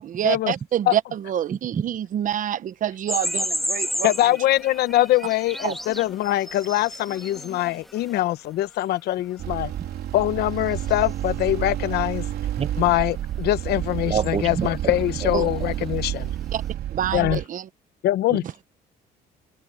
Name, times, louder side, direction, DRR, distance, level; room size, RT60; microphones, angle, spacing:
voice 1, 0.0-4.1 5.6-5.7 15.3-15.4 16.5-16.6 16.9-17.7, right 10 dB, 50° right, 1.0 m, -27 dB
voice 2, 1.5-1.8 12.6-12.8 14.1-14.9 15.2-15.3 18.3-18.6, right 7 dB, 35° right, 1.3 m, -28 dB
sound 1, 3.1-8.3 8.8-8.9 10.9-11.1 11.4-11.5 12.5-12.9 14.2-14.3 15.0-15.2 15.5-15.8, equal, ahead, 1.5 m, -32 dB
voice 3, 4.0-9.7 10.1-12.2 12.8-16.3 17.1-17.4 18.0-18.4, left 15 dB, 75° left, 0.9 m, -23 dB
sound 2, 9.4-17.5, right 12 dB, 70° right, 3.4 m, -30 dB
open air
cardioid pair, 110°, 17 cm